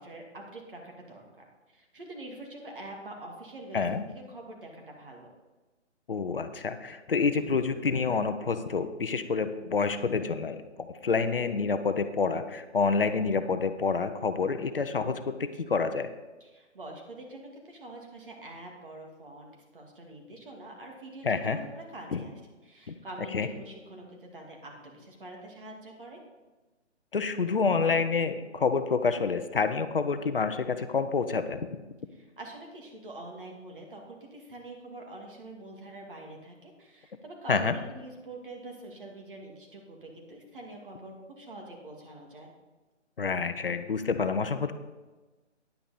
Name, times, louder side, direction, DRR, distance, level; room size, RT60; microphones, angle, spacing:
voice 1, 0.0-5.3 16.4-26.2 32.1-42.5, right 2 dB, 45° right, 1 dB, 2.3 m, -45 dB
voice 2, 3.7-4.0 6.1-10.6 11.0-16.1 21.2-21.6 22.1-22.2 22.9-23.0 23.3-23.5 27.1-31.8 37.5-37.7 43.2-44.7, left 5 dB, 50° left, 9 dB, 0.7 m, -28 dB
10.0 x 9.2 x 4.2 m, 1.2 s
hypercardioid pair, 175°, 36 cm